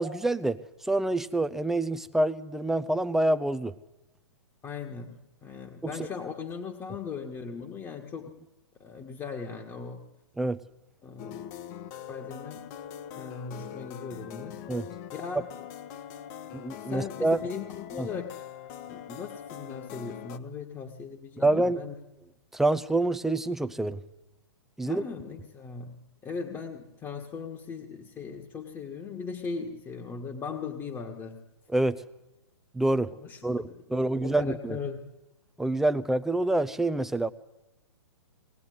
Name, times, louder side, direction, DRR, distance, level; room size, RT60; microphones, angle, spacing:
voice 1, 0.0-3.7 5.8-6.1 10.4-10.6 14.7-14.9 16.5-17.4 18.0-18.1 21.4-21.8 22.5-24.0 24.8-25.0 31.7-32.0 32.7-33.1 33.4-33.6 33.9-34.8 35.6-37.3, right 2 dB, ahead, 12 dB, 0.7 m, -27 dB
voice 2, 4.6-8.4 8.8-10.0 11.0-11.4 12.1-12.7 13.1-14.6 15.1-15.5 16.9-18.4 18.8-21.9 24.8-26.0 26.2-31.4 33.2-35.1, left 5 dB, 20° left, 2 dB, 1.8 m, -38 dB
sound 1, 11.2-20.4, left 9 dB, 40° left, 1.4 m, -42 dB
22.0 x 19.5 x 9.5 m, 1.0 s
hypercardioid pair, 130°, 15 cm